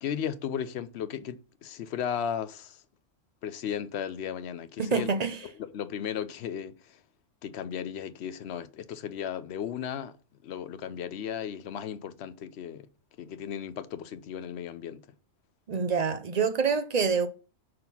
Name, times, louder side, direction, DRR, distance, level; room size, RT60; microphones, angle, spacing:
voice 1, 0.0-2.8 3.4-5.1 5.6-7.0 7.4-10.1 10.4-12.9 13.2-15.0, left 8 dB, 65° left, 0.9 m, -35 dB
voice 2, 4.8-5.4 15.7-17.3, right 5 dB, 45° right, 0.6 m, -26 dB
6.6 x 4.1 x 5.6 m
omnidirectional pair, 1.3 m